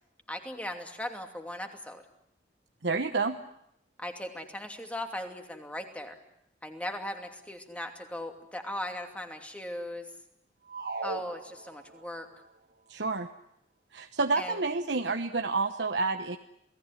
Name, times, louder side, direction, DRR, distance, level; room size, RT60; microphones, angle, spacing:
voice 1, 0.3-2.0 4.0-6.2 6.6-10.1 11.0-12.3 14.4-14.6, left 1 dB, 10° left, 5 dB, 2.7 m, -38 dB
voice 2, 2.8-3.4 12.9-13.3 13.9-16.4, right 3 dB, 75° right, 6 dB, 1.1 m, -29 dB
sound 1, 10.7-12.2, right 3 dB, 55° right, 1.9 m, -38 dB
28.5 x 18.0 x 10.0 m, 0.76 s
head